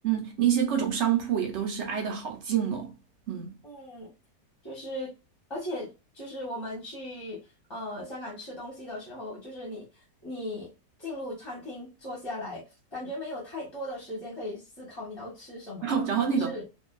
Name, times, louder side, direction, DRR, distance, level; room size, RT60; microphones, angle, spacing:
voice 1, 0.0-2.9 3.3-3.6 15.8-16.6, right 8 dB, 65° right, 0.7 m, -27 dB
voice 2, 3.6-4.1 4.6-5.1 5.5-7.4 7.7-10.7 11.0-12.6 12.9-16.0 16.3-16.6, left 1 dB, 25° left, 0.7 m, -38 dB
2.5 x 2.3 x 2.3 m
omnidirectional pair, 1.7 m